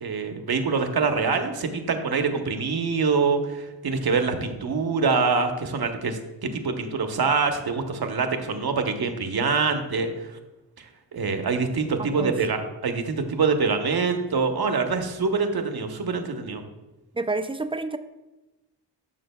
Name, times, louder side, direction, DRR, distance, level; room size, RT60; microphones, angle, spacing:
voice 1, 0.0-6.2 6.5-10.4 10.8-16.6, right 4 dB, 55° right, 6 dB, 1.0 m, -25 dB
voice 2, 12.0-12.3 17.1-18.0, right 3 dB, 15° right, 8 dB, 0.4 m, -29 dB
12.5 x 6.2 x 2.2 m, 1.0 s
wide cardioid pair, 85°, 45 cm